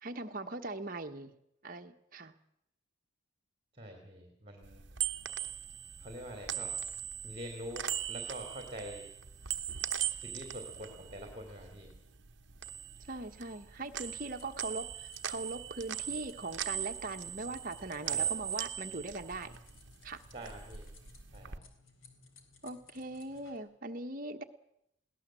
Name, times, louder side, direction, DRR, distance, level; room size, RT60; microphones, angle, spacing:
voice 1, 0.0-1.3 1.6-2.3 13.1-19.6 20.0-20.2 22.6-24.4, right 2 dB, 45° right, 5 dB, 1.3 m, -40 dB
voice 2, 3.7-4.8 6.0-6.7 7.2-9.1 10.0-11.9 18.0-18.3 20.3-20.9 21.3-21.6, equal, 30° right, 4 dB, 3.1 m, -45 dB
sound 1, 4.7-12.0 12.3-13.7 13.9-19.9 20.3-21.6, right 9 dB, 60° right, 1.0 m, -39 dB
sound 2, 13.7-23.6, left 4 dB, 85° left, 3.6 m, -61 dB
21.5 x 17.5 x 7.6 m, 0.78 s
head